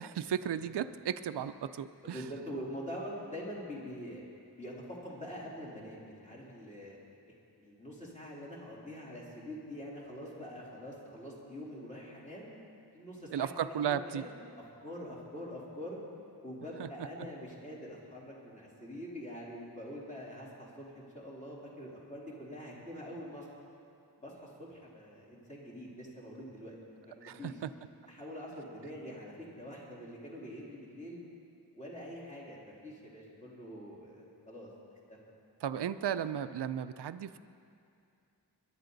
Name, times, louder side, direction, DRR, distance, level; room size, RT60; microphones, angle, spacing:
voice 1, 0.0-2.2 13.3-14.2 16.8-16.9 27.2-27.7 35.6-37.4, right 9 dB, 70° right, 11 dB, 0.5 m, -35 dB
voice 2, 2.0-4.2 4.6-4.7 5.0-7.0 7.6-12.5 12.9-13.5 13.9-14.3 14.8-16.0 16.4-23.5 24.2-26.8 27.0-27.6 28.1-31.2 31.7-34.7, equal, 15° left, -6 dB, 3.5 m, -45 dB
22.0 x 11.0 x 4.0 m, 2.5 s
wide cardioid pair, 90°, 42 cm